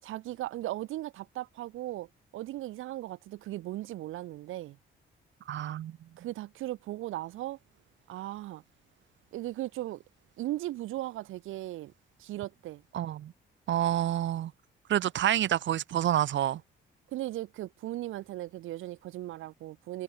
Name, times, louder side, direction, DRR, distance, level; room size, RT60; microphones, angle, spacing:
voice 1, 0.0-4.8 6.2-7.6 8.1-8.6 9.3-10.0 10.4-11.9 12.2-12.8 17.1-20.0, right 15 dB, 90° right, 7.2 m, -37 dB
voice 2, 5.5-6.0 12.9-13.3 13.7-14.5 14.9-16.6, right 11 dB, 70° right, 2.1 m, -28 dB
cardioid pair, 90°, 20 cm